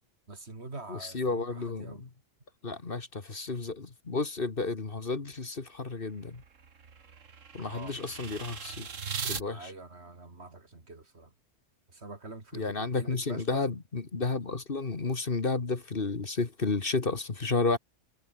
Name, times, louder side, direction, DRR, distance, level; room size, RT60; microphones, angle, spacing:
voice 1, 0.3-2.0 7.6-8.0 9.5-11.3 11.9-13.6, right 3 dB, 60° right, 3.3 m, -45 dB
voice 2, 0.9-2.1 2.6-6.4 7.5-8.9 9.2-9.7 12.5-17.8, left 3 dB, 45° left, 2.0 m, -32 dB
sound 1, 5.8-9.4, right 6 dB, 90° right, 2.0 m, -39 dB
omnidirectional pair, 1.3 m